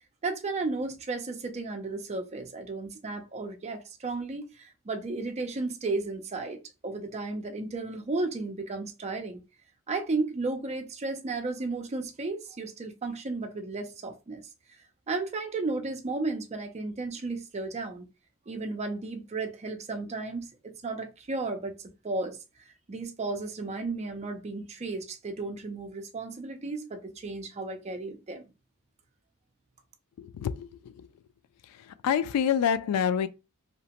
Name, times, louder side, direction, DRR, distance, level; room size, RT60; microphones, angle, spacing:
voice 1, 0.2-9.4 9.9-14.5 15.1-18.1 18.5-22.4 22.7-28.5, right 3 dB, 30° right, 0.4 m, -34 dB
voice 2, 30.2-30.7 31.0-31.1 32.0-33.3, left 8 dB, 85° left, 0.3 m, -26 dB
2.8 x 2.0 x 2.8 m
head